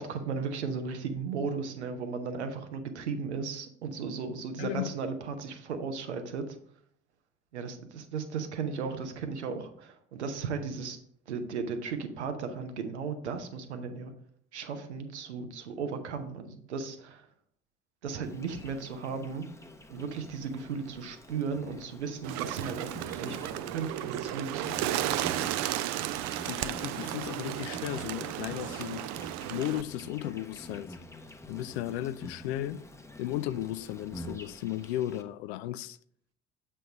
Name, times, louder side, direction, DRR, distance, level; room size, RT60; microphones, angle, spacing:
voice 1, 0.0-6.4 7.5-11.0 11.3-14.1 14.5-17.2 18.0-19.5 19.9-25.4, right 5 dB, 80° right, 0.8 m, -36 dB
voice 2, 4.6-4.9 26.5-29.0 29.5-31.0 31.5-32.8 33.2-36.0, left 13 dB, 70° left, 0.5 m, -35 dB
Insect, 18.2-35.2, left 1 dB, 10° left, 0.8 m, -47 dB
Bird, 22.2-29.8, right 13 dB, 55° right, 0.5 m, -34 dB
7.6 x 3.3 x 5.3 m
figure-of-eight pair, 50°, 34 cm